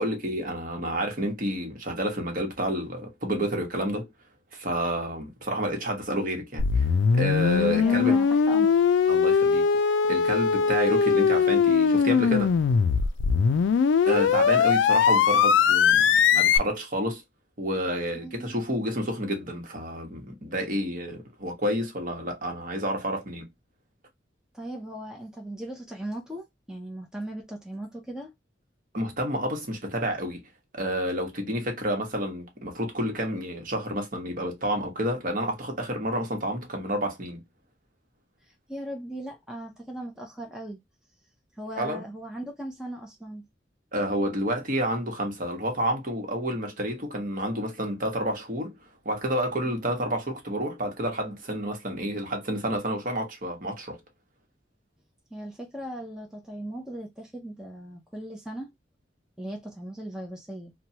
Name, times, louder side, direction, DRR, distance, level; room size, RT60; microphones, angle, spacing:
voice 1, 0.0-4.1 4.5-8.2 9.1-9.7 10.1-12.5 14.1-17.2 17.6-23.5 28.9-30.4 30.7-37.4 41.8-42.0 43.9-48.8 49.0-54.0, equal, 50° right, 1.0 m, -29 dB
sound 1, 6.6-16.6, left 6 dB, 85° left, 0.3 m, -21 dB
voice 2, 7.8-8.8 18.2-18.6 24.5-28.3 38.4-40.8 41.6-43.4 55.3-58.7 59.4-60.7, right 1 dB, 5° right, 0.5 m, -38 dB
3.0 x 2.2 x 2.7 m
head